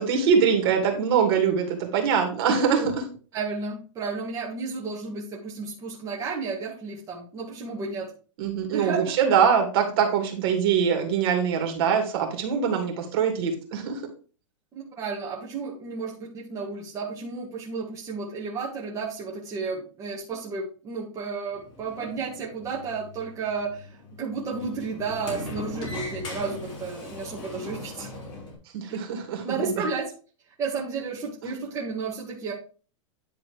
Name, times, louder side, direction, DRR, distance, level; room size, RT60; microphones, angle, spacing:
voice 1, 0.0-3.0 8.4-14.0 28.7-29.7, right 7 dB, 50° right, 3 dB, 2.6 m, -23 dB
voice 2, 3.3-8.1 8.7-9.2 14.7-28.1 28.9-29.0 29.4-30.1 30.6-32.5, right 4 dB, 20° right, -3 dB, 1.6 m, -32 dB
Sliding door, 21.5-28.5, left 2 dB, 25° left, 3.4 m, -39 dB
10.0 x 3.8 x 4.8 m, 0.37 s
supercardioid pair, 155°, 17 cm